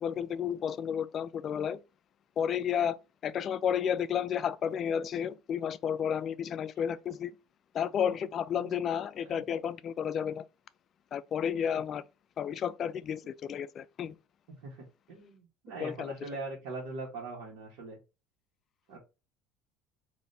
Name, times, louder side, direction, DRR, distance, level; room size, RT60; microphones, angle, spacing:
voice 1, 0.0-1.8 2.4-3.0 3.2-7.3 7.7-10.4 11.1-12.0 12.4-14.1 15.8-16.1, left 8 dB, 35° left, 0.3 m, -32 dB
voice 2, 14.5-18.0 18.9-19.0, right 3 dB, 75° right, 1.4 m, -42 dB
4.1 x 2.7 x 3.3 m
cardioid pair, 135°, 0 cm